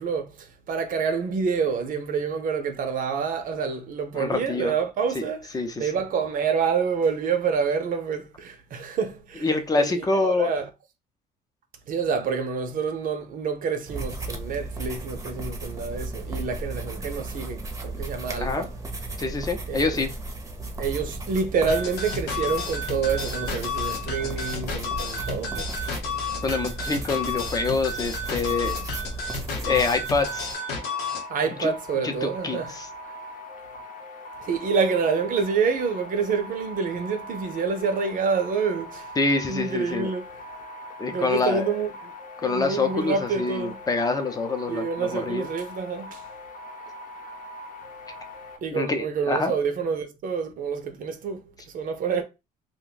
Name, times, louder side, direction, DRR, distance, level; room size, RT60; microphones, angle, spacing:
voice 1, 0.0-5.5 5.8-9.5 9.8-10.7 11.9-18.7 19.7-20.0 20.8-25.7 31.3-32.8 34.4-39.1 39.5-40.3 41.1-42.1 42.4-43.8 44.7-46.2 48.6-52.2, right 5 dB, 55° right, 0.6 m, -27 dB
voice 2, 4.1-4.7 5.1-5.3 5.5-5.9 9.4-10.5 18.4-18.7 19.2-20.1 26.4-28.8 29.6-30.5 31.6-31.7 32.0-32.9 39.2-40.1 41.0-41.7 42.4-45.5 48.7-49.5, left 3 dB, 20° left, 0.6 m, -26 dB
sound 1, 13.9-30.5, right 2 dB, 20° right, 0.7 m, -35 dB
sound 2, 21.7-31.3, left 4 dB, 80° left, 0.8 m, -31 dB
sound 3, 30.2-48.6, left 1 dB, 50° left, 0.8 m, -41 dB
2.5 x 2.2 x 3.8 m
cardioid pair, 110°, 17 cm